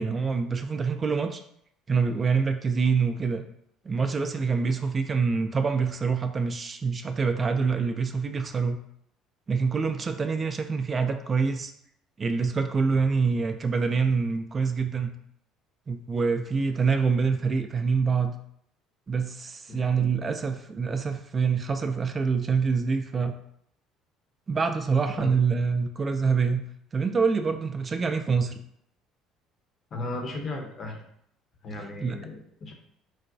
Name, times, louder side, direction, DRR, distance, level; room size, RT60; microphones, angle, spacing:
voice 1, 0.0-1.4 1.9-3.4 3.8-8.8 9.5-11.7 12.2-15.1 15.9-18.3 19.1-23.3 24.5-26.6 26.9-28.6 32.0-32.2, right 5 dB, 35° right, 6 dB, 0.3 m, -26 dB
voice 2, 19.8-20.1 25.2-25.3 29.9-31.0 31.6-32.7, left 2 dB, 45° left, 2 dB, 0.7 m, -36 dB
3.9 x 2.2 x 2.6 m, 0.70 s
hypercardioid pair, 60°, 0 cm